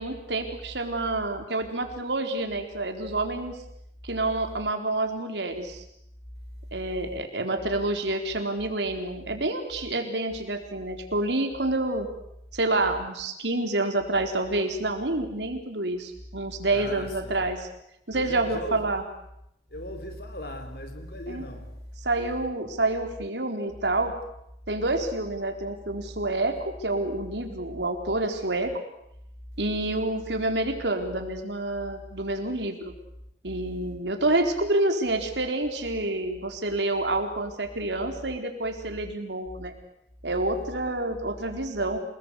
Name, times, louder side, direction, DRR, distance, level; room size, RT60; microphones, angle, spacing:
voice 1, 0.0-3.6 4.0-5.8 6.7-12.1 12.5-17.7 18.1-19.0 21.3-21.4 22.0-24.1 24.7-28.7 29.6-32.9 33.4-39.7 40.2-42.0, right 2 dB, 85° right, 4.2 m, -28 dB
voice 2, 16.7-17.4 18.1-18.9 19.7-21.8, left 1 dB, 65° left, 4.0 m, -38 dB
27.5 x 20.5 x 8.4 m
head